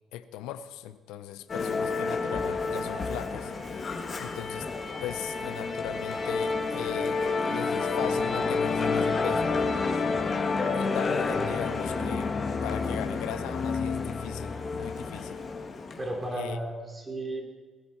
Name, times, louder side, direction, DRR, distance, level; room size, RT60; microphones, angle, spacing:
voice 1, 0.1-3.9 4.2-4.7 5.0-9.6 10.7-12.3 12.6-15.4 16.3-16.6, left 12 dB, 85° left, 12 dB, 0.6 m, -39 dB
Musical instrument, 1.5-16.2, left 4 dB, 40° left, 1.8 m, -29 dB
voice 2, 16.0-17.4, right 1 dB, 25° right, 1 dB, 3.3 m, -34 dB
19.5 x 10.5 x 4.3 m, 1.4 s
supercardioid pair, 65°, 0 cm